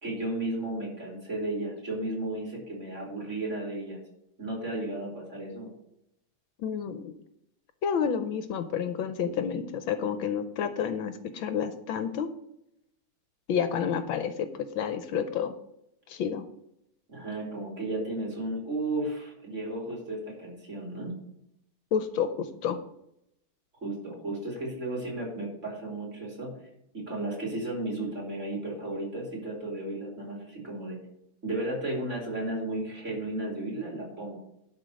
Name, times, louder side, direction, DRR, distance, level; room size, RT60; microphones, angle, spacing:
voice 1, 0.0-4.0 4.4-5.7 17.1-21.2 23.8-26.6 26.9-31.0 31.4-34.4, right 2 dB, 35° right, -3 dB, 3.7 m, -34 dB
voice 2, 6.6-7.1 7.8-12.3 13.5-15.5 16.1-16.4 21.9-22.8, left 7 dB, 75° left, 9 dB, 1.5 m, -30 dB
11.5 x 4.8 x 6.3 m, 0.80 s
omnidirectional pair, 2.3 m